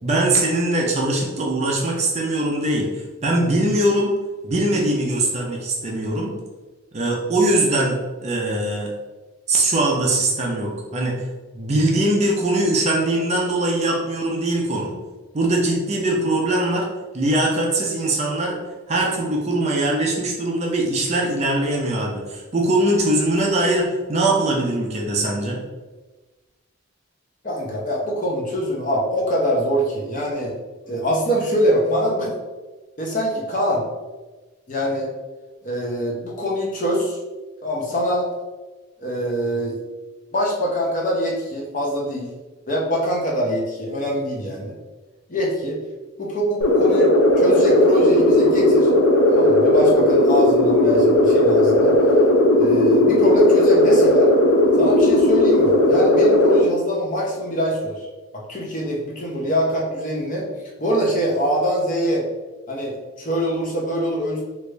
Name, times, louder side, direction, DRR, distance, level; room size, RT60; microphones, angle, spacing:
voice 1, 0.0-4.2 4.4-6.4 6.9-8.9 9.5-11.3 11.5-14.9 15.3-16.9 17.1-18.6 18.9-25.6, right 1 dB, 30° right, -1 dB, 0.4 m, -21 dB
voice 2, 27.4-30.5 30.9-32.4 33.0-33.8 34.7-35.1 35.6-37.2 37.6-38.3 39.0-39.8 40.3-42.3 42.7-44.7 45.3-45.8 46.2-47.1 47.4-48.9 49.3-51.9 52.6-54.3 54.8-58.0 58.3-60.5 60.8-62.3 62.7-64.4, equal, 35° left, -2 dB, 0.6 m, -23 dB
sound 1, 46.6-56.6, left 1 dB, 75° left, 0.5 m, -16 dB
3.3 x 2.5 x 3.1 m, 1.2 s
head